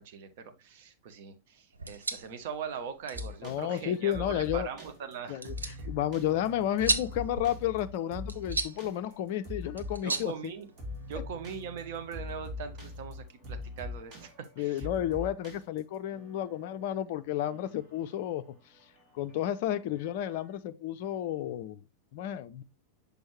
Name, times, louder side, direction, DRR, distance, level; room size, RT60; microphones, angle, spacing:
voice 1, 0.0-5.9 10.0-10.7 11.1-14.9, right 7 dB, 50° right, 0.9 m, -41 dB
sound 1, 1.7-11.2, right 3 dB, 80° right, 0.6 m, -38 dB
sound 2, 3.1-20.6, left 2 dB, 35° right, 2.4 m, -43 dB
voice 2, 3.4-4.7 5.3-5.6 5.8-10.5 14.6-18.4 19.1-21.8 22.1-22.6, left 11 dB, 50° left, 0.4 m, -32 dB
6.2 x 5.1 x 3.1 m
figure-of-eight pair, 90°, 0 cm